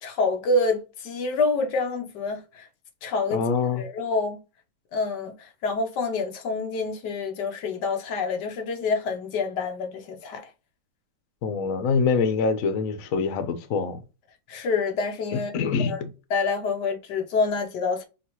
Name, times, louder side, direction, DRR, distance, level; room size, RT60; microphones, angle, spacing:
voice 1, 0.0-2.7 3.0-3.4 3.8-4.4 4.9-10.5 14.5-16.0 16.3-18.0, left 3 dB, 60° left, 1.3 m, -27 dB
voice 2, 3.3-3.8 11.4-14.0 15.3-16.1, left 5 dB, 90° left, 0.7 m, -25 dB
6.2 x 2.4 x 2.9 m
omnidirectional pair, 2.3 m